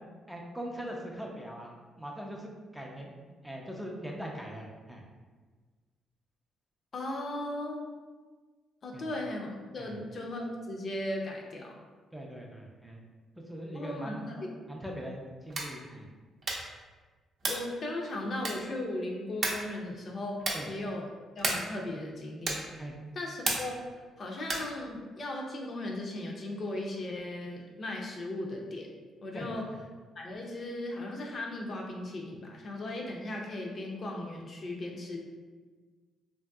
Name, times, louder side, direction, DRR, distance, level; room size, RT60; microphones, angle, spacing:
voice 1, 0.3-5.0 8.9-9.0 9.8-9.9 12.1-13.0 13.5-14.3 14.7-16.1 20.5-20.7 22.8-23.0 29.3-29.8, equal, ahead, -1 dB, 0.4 m, -41 dB
voice 2, 6.9-7.9 8.8-11.8 13.7-14.5 17.5-20.4 20.7-21.1 21.4-22.8 23.1-23.8 24.2-28.9 29.2-29.6 30.2-35.2, left 1 dB, 45° left, 0 dB, 0.5 m, -37 dB
sound 1, 15.4-15.8 16.4-16.8 17.4-17.7 18.4-18.8 19.4-19.7 20.4-20.7 21.4-21.8 22.4-22.8 23.4-23.8 24.4-24.8, right 2 dB, 50° right, 0.6 m, -33 dB
3.0 x 2.6 x 2.3 m, 1.4 s
cardioid pair, 90°, 0 cm